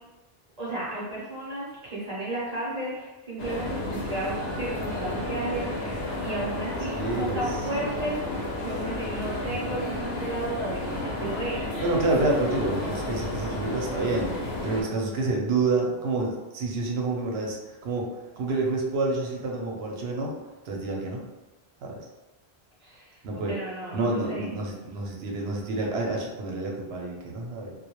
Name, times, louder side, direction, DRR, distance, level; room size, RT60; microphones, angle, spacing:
voice 1, 0.6-11.7 22.8-24.6, right 1 dB, 45° right, -7 dB, 0.7 m, -34 dB
sound 1, 3.4-14.8, left 1 dB, 80° left, 0.8 m, -32 dB
voice 2, 6.9-7.4 11.8-18.1 18.4-20.3 20.6-21.2 21.8-22.0 23.2-23.6 23.9-27.7, right 3 dB, 80° right, -1 dB, 0.8 m, -28 dB
2.2 x 2.1 x 2.9 m, 1.1 s
omnidirectional pair, 1.0 m